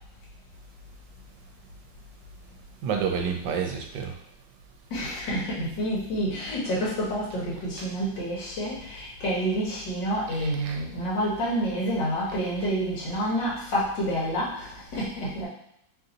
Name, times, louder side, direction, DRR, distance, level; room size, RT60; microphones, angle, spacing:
voice 1, 2.8-4.1 7.8-7.9 10.3-10.8 14.9-15.0, right 7 dB, 85° right, 3 dB, 1.3 m, -30 dB
voice 2, 4.9-15.5, equal, 85° left, -6 dB, 2.0 m, -28 dB
3.9 x 2.7 x 3.9 m, 0.74 s
omnidirectional pair, 1.9 m